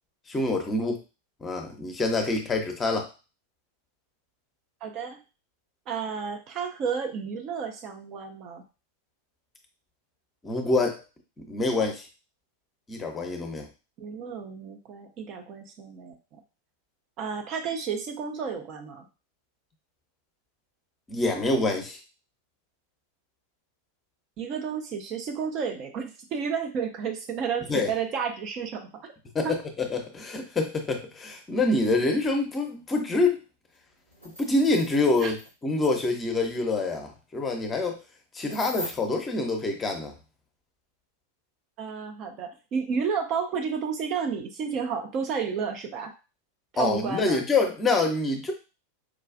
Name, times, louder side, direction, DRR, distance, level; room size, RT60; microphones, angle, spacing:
voice 1, 0.3-1.0 1.4-3.1 10.4-11.0 11.4-12.1 12.9-13.7 21.1-22.0 27.7-27.9 29.3-29.6 29.9-33.4 34.4-35.4 35.6-38.0 38.3-40.1 46.8-48.5, left 2 dB, 20° left, 3 dB, 0.7 m, -26 dB
voice 2, 4.8-5.2 5.9-8.6 14.0-16.2 17.2-19.1 24.4-29.1 29.4-29.6 35.2-35.3 41.8-46.1 46.7-47.4, right 6 dB, 35° right, 5 dB, 0.5 m, -31 dB
sound 1, 33.7-33.8 34.1-35.5 35.8-35.9 38.5-38.9, equal, 90° right, 1.5 m, -40 dB
4.8 x 2.3 x 2.4 m, 0.30 s
figure-of-eight pair, 90°, 0 cm